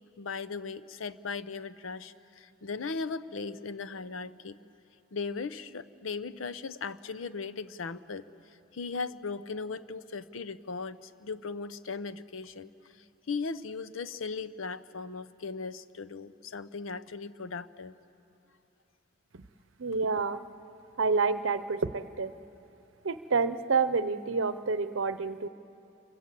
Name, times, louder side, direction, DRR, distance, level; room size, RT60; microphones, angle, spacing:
voice 1, 0.2-4.6 5.1-17.9, left 4 dB, 85° left, 13 dB, 0.7 m, -38 dB
voice 2, 19.8-20.4 21.0-22.3 23.0-25.5, right 4 dB, 80° right, 13 dB, 0.7 m, -28 dB
27.0 x 24.0 x 7.5 m, 2.8 s
head